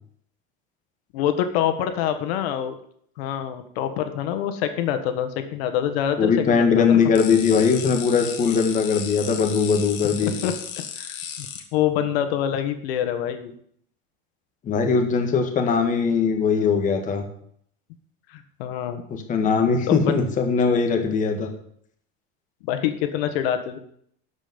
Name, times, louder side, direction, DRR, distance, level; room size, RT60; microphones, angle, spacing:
voice 1, 1.1-2.8 3.2-7.0 10.2-11.5 11.7-13.5 18.3-19.0 19.9-20.1 22.6-23.8, left 10 dB, 85° left, 8 dB, 1.5 m, -26 dB
voice 2, 6.2-10.3 14.6-17.2 19.1-21.5, left 5 dB, 25° left, 3 dB, 1.7 m, -20 dB
sound 1, 7.1-11.6, left 8 dB, 50° left, 2.0 m, -35 dB
12.5 x 5.3 x 7.9 m, 0.65 s
cardioid pair, 160°, 30 cm